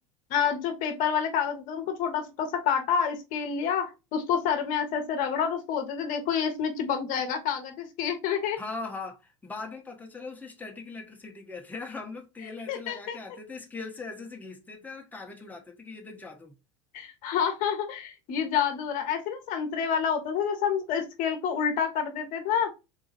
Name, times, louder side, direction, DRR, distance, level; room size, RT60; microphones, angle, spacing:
voice 1, 0.3-8.6 12.7-13.2 16.9-22.7, left 7 dB, 55° left, 0.9 m, -28 dB
voice 2, 8.6-16.5, left 3 dB, 10° left, 1.0 m, -40 dB
3.8 x 2.7 x 2.8 m
hypercardioid pair, 85°, 16 cm